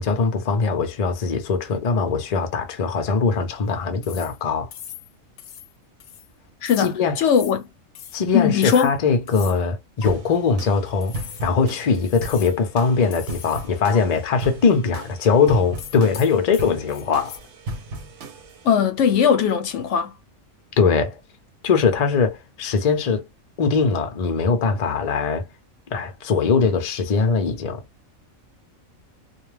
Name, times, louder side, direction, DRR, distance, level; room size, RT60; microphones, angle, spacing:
voice 1, 0.0-4.7 6.8-7.2 8.1-17.4 20.8-21.2 21.6-23.3 23.6-25.5 25.9-27.8, left 5 dB, 50° left, 0.4 m, -21 dB
sound 1, 4.0-4.4 4.7-5.1 5.4-5.7 6.0-6.3 6.7-6.9 7.3-7.6 8.0-8.2 8.6-9.0 9.3-9.6 10.0-10.1 11.0-11.5 11.9-12.6 13.1-13.7 13.9-14.0 15.8-17.4, left 10 dB, 90° left, 1.0 m, -40 dB
voice 2, 6.6-7.6 8.3-8.9 18.6-20.1, left 8 dB, 70° left, 0.8 m, -19 dB
sound 2, 10.0-18.7, right 1 dB, 65° right, 0.9 m, -36 dB
2.4 x 2.2 x 3.2 m
omnidirectional pair, 1.4 m